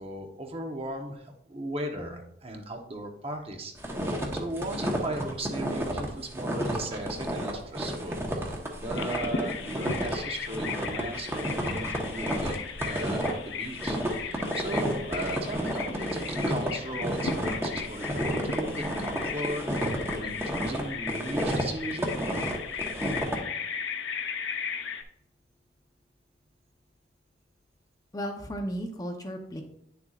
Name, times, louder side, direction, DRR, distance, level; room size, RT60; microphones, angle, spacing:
voice 1, 0.0-3.7 4.3-14.0 14.5-22.1, right 1 dB, 30° right, 3 dB, 1.0 m, -37 dB
sound 1, 3.8-23.4, equal, 15° right, 1.1 m, -31 dB
Bird vocalization bird call bird song, 9.0-25.0, left 6 dB, 85° left, 0.7 m, -36 dB
voice 2, 28.1-29.6, equal, 20° left, 3 dB, 0.8 m, -34 dB
9.6 x 6.8 x 2.4 m, 0.75 s
head